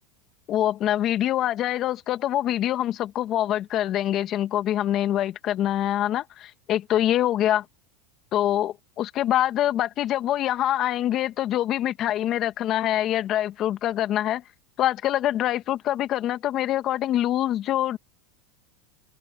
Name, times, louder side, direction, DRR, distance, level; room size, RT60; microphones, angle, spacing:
voice 1, 0.5-7.6 8.3-14.4 14.8-18.0, left 12 dB, 40° left, 1.8 m, -25 dB
supercardioid pair, 130°, 0 cm